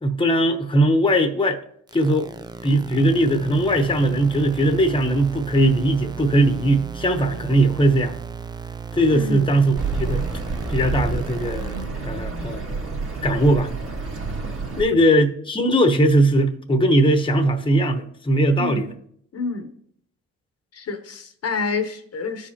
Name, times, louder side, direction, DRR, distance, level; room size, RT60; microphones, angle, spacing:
voice 1, 0.0-1.6 1.9-2.3 2.6-8.1 8.9-10.2 10.7-12.8 13.2-13.7 14.8-18.9, right 1 dB, 15° left, 0.9 m, -19 dB
sound 1, 1.9-11.8, right 5 dB, 15° right, 0.4 m, -36 dB
voice 2, 9.1-9.5 18.6-18.9 19.3-19.7 20.7-22.5, left 4 dB, 55° left, 0.9 m, -28 dB
Accelerating revving vroom, 9.7-14.8, right 4 dB, 45° right, 1.9 m, -28 dB
13.0 x 4.9 x 2.9 m
cardioid pair, 75°, 31 cm